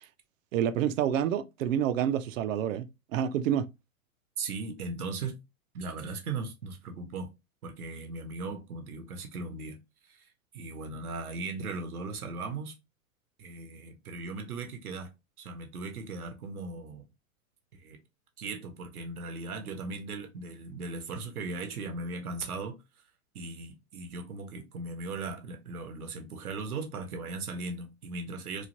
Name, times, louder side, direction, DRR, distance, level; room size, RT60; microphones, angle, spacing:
voice 1, 0.5-2.8 3.1-3.7, right 9 dB, 65° right, 0.5 m, -28 dB
voice 2, 4.4-5.3 5.7-7.3 7.6-12.8 13.4-15.1 15.4-17.0 17.7-18.0 18.4-22.8 23.3-28.7, right 3 dB, 90° right, 0.8 m, -38 dB
3.1 x 2.3 x 2.5 m
hypercardioid pair, 120°, 43 cm